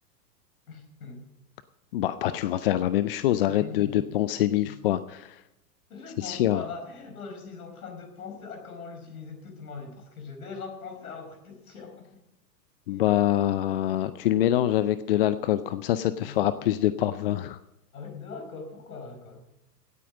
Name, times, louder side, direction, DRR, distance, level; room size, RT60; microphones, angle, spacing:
voice 1, 0.7-1.2 3.5-4.1 4.6-4.8 5.9-12.1 12.9-13.1 16.2-16.4 17.9-19.4, left 5 dB, 60° left, 4 dB, 5.0 m, -41 dB
voice 2, 1.9-5.4 6.2-6.6 12.9-17.6, left 13 dB, 35° left, 14 dB, 0.5 m, -25 dB
17.0 x 9.0 x 5.4 m, 0.87 s
figure-of-eight pair, 105°, 49 cm